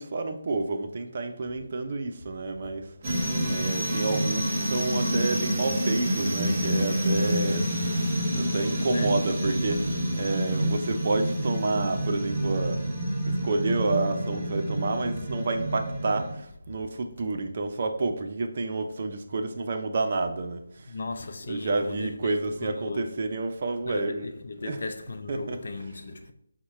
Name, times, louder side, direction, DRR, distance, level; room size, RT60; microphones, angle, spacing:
voice 1, 0.0-7.7 8.3-13.0 13.3-20.9 21.4-24.9 25.3-26.1, right 3 dB, 45° right, 0.5 m, -30 dB
sound 1, 3.0-16.3, equal, 30° right, 1.1 m, -28 dB
voice 2, 20.9-23.2 23.9-26.3, left 3 dB, 55° left, 0.5 m, -36 dB
5.6 x 2.2 x 4.1 m
figure-of-eight pair, 155°, 0 cm